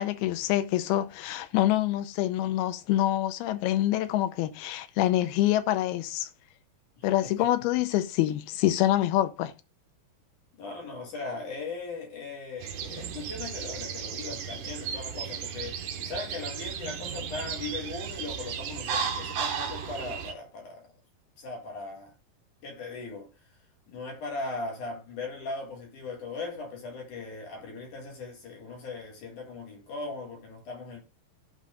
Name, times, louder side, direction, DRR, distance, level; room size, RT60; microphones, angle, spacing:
voice 1, 0.0-6.3 7.0-9.5, left 14 dB, 80° left, 2.5 m, -26 dB
voice 2, 7.0-7.5 10.6-20.9 21.4-22.1 22.6-23.3 23.9-31.0, left 3 dB, 55° left, 3.0 m, -39 dB
sound 1, 12.6-20.3, right 7 dB, 70° right, 2.3 m, -35 dB
13.5 x 6.0 x 2.5 m
omnidirectional pair, 4.8 m